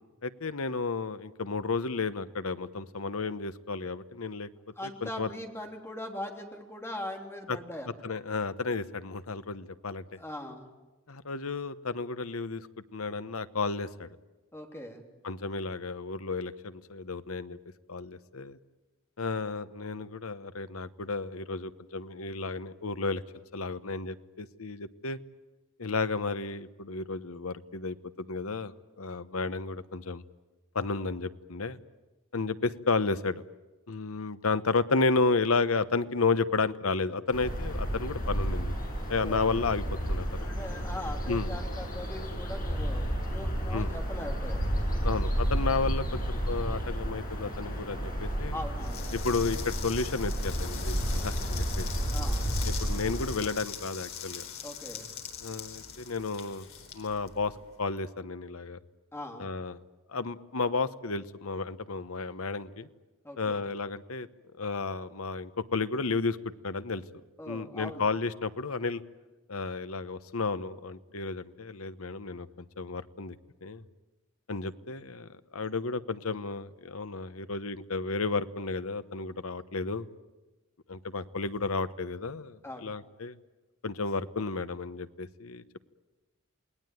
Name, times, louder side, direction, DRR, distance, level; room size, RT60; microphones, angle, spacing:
voice 1, 0.2-4.5 4.8-5.3 7.5-7.6 8.0-10.0 11.1-12.7 12.9-14.1 15.2-17.6 17.9-18.6 19.2-23.2 23.5-25.2 25.8-30.2 30.7-31.8 32.3-33.4 33.9-38.8 39.1-40.5 41.3-41.5 43.7-43.9 45.0-48.6 49.1-52.0 52.6-54.5 55.4-56.7 56.9-57.5 57.8-58.8 59.4-59.8 60.1-62.9 63.4-64.3 64.6-66.4 66.6-67.0 67.5-69.0 69.5-72.5 72.8-73.4 73.6-73.8 74.5-80.1 80.9-83.4 83.8-85.8, left 3 dB, 85° left, 12 dB, 1.1 m, -32 dB
voice 2, 4.8-8.1 10.1-10.7 14.5-15.0 39.2-39.4 40.4-44.7 45.3-45.5 48.5-49.1 52.1-52.5 54.6-55.1 59.1-59.5 63.2-63.6 67.4-68.1 82.6-82.9, left 1 dB, 10° left, 2 dB, 3.2 m, -41 dB
sound 1, 37.3-53.4, equal, 45° left, 7.0 m, -32 dB
sound 2, 48.8-57.8, left 8 dB, 70° left, 4.5 m, -42 dB
28.0 x 20.0 x 9.3 m, 1.1 s
head